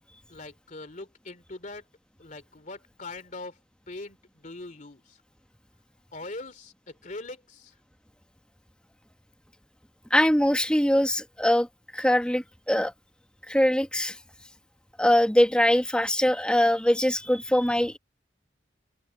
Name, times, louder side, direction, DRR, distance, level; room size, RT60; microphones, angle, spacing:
voice 1, 0.3-1.8 2.2-3.5 3.9-4.2 4.4-5.0 6.1-6.7 7.0-7.7, left 2 dB, 45° left, 2.8 m, -41 dB
voice 2, 10.1-11.7 11.9-12.9 13.5-14.2 15.0-18.0, left 1 dB, 5° left, 1.4 m, -22 dB
open air
head